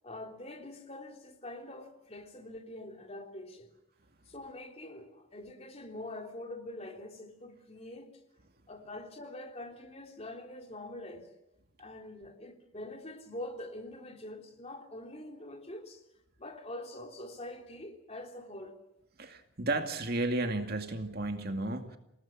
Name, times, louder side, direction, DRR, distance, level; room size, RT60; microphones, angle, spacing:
voice 1, 0.0-3.7 4.3-8.1 8.7-11.3 11.8-16.0 16.4-18.8, left 1 dB, 30° left, 3.4 m, -44 dB
voice 2, 19.2-22.0, right 2 dB, 50° right, 2.3 m, -33 dB
28.5 x 18.5 x 7.6 m
head